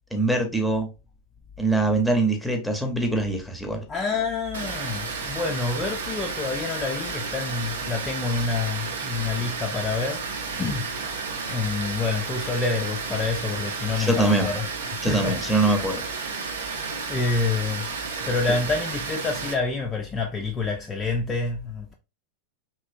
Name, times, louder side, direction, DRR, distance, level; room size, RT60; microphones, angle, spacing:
voice 1, 0.1-0.9 1.6-3.8 14.0-14.5 15.0-16.0, right 2 dB, ahead, 0.7 m, -23 dB
voice 2, 3.9-10.3 10.6-10.9 11.5-14.7 15.1-15.6 17.1-17.9 18.3-21.9, left 4 dB, 20° left, 0.4 m, -27 dB
Water, 4.5-19.5, right 4 dB, 65° right, 0.6 m, -32 dB
3.1 x 2.8 x 2.6 m
figure-of-eight pair, 90°, 0 cm